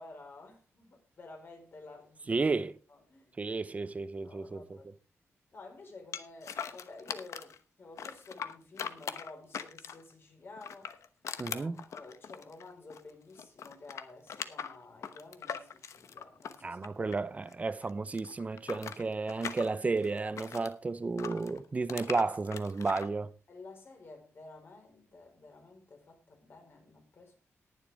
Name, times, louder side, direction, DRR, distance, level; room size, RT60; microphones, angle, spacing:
voice 1, 0.0-2.4 2.9-3.3 4.2-4.9 5.5-10.9 11.4-17.1 22.1-22.2 23.5-27.4, left 3 dB, 45° left, 4.6 m, -52 dB
voice 2, 2.3-2.8 3.4-4.8 11.4-11.8 16.6-23.3, right 3 dB, 30° right, 0.7 m, -32 dB
sound 1, 6.1-7.6 8.0-10.1 10.6-13.1 13.4-17.5 17.8-20.7 21.2-23.1, left 7 dB, 75° left, 1.0 m, -41 dB
19.0 x 7.6 x 3.5 m
wide cardioid pair, 115°, 5 cm